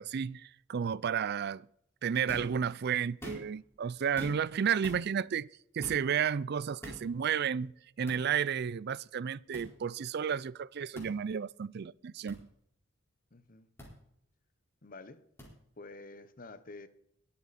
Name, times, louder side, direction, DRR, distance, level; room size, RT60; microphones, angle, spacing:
voice 1, 0.0-1.7 2.0-5.5 5.7-7.7 8.0-12.5, right 7 dB, 55° right, 0.4 m, -32 dB
sound 1, 2.3-2.6 3.1-3.6 4.2-4.5 4.8-5.0 5.8-6.1 6.8-7.1 8.1-8.2 9.5-9.7 10.9-11.1 12.3-12.4 13.8-13.9 15.4-15.5, equal, 10° left, 4.4 m, -44 dB
voice 2, 13.3-13.7 14.8-15.2 15.8-16.9, left 3 dB, 45° left, 1.0 m, -49 dB
21.5 x 8.5 x 4.2 m
head